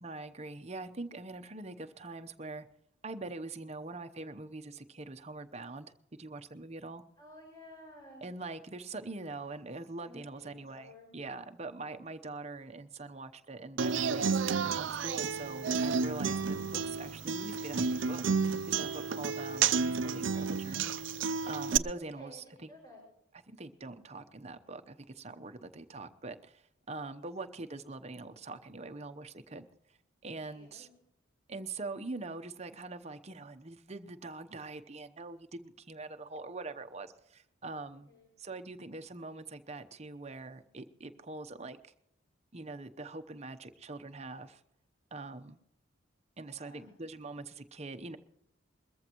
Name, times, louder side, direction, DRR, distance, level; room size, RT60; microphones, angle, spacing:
voice 1, 0.0-2.7 3.0-7.0 8.2-14.3 14.6-18.2 18.7-20.9 21.5-22.7 23.5-29.7 30.2-30.9 31.5-38.1 38.4-41.9 42.5-44.6 45.1-45.6 46.4-48.2, right 3 dB, 35° right, 8 dB, 0.8 m, -43 dB
voice 2, 7.2-8.3 10.0-11.1 22.1-23.0 30.4-30.9 38.1-38.3 46.5-47.0, left 1 dB, 20° left, -3 dB, 5.7 m, -54 dB
Human voice / Acoustic guitar, 13.8-21.8, right 5 dB, 70° right, 0.5 m, -31 dB
22.0 x 14.5 x 3.0 m, 0.79 s
head